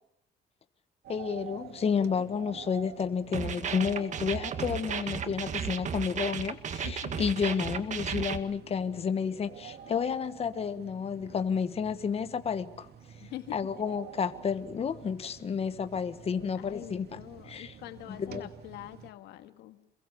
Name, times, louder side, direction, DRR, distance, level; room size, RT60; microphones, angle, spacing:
sound 1, 1.0-19.1, right 9 dB, 70° right, 2.7 m, -49 dB
voice 1, 1.1-12.9 13.5-17.2 17.5-17.7 18.2-18.5, left 6 dB, 35° left, 1.4 m, -31 dB
sound 2, 3.3-8.4, right 7 dB, 45° right, 2.0 m, -34 dB
voice 2, 6.8-7.3 13.2-14.0 16.5-19.9, left 14 dB, 85° left, 1.8 m, -45 dB
28.0 x 22.5 x 6.9 m
cardioid pair, 110°, 17 cm